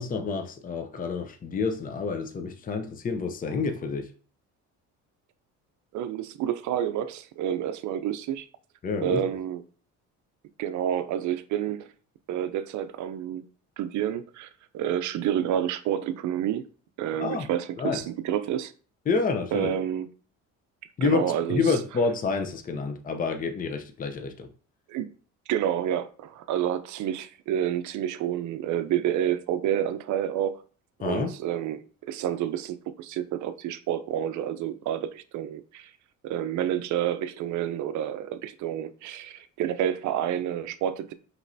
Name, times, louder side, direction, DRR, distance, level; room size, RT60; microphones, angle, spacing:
voice 1, 0.0-4.1 8.8-9.2 17.2-17.5 17.8-18.0 19.1-19.7 21.0-21.2 21.5-24.5 31.0-31.3, left 4 dB, 25° left, 0.6 m, -28 dB
voice 2, 5.9-8.5 9.0-9.6 10.6-11.8 12.3-13.4 13.8-16.7 17.0-18.7 19.5-20.1 21.0-21.8 24.9-25.1 25.5-30.6 31.0-35.9 36.2-41.1, right 10 dB, 60° right, 0.5 m, -29 dB
5.2 x 3.1 x 2.6 m
supercardioid pair, 85°, 33 cm